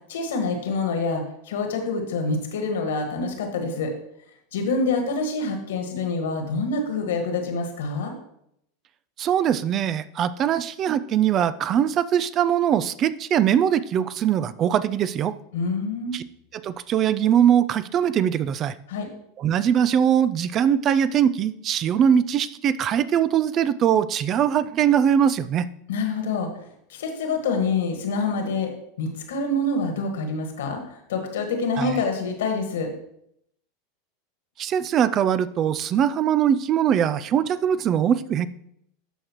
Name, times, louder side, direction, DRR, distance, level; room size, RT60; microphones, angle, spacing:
voice 1, 0.1-3.9 4.5-8.1 15.5-16.2 18.9-19.1 25.9-26.5 26.9-28.7 29.0-30.8 31.1-32.9, left 3 dB, 75° left, 4 dB, 1.6 m, -26 dB
voice 2, 9.2-15.3 16.1-16.2 16.5-18.7 19.4-25.7 31.8-32.0 34.6-38.5, right 9 dB, 40° right, 16 dB, 0.4 m, -21 dB
12.5 x 4.9 x 3.0 m, 0.74 s
hypercardioid pair, 95°, 0 cm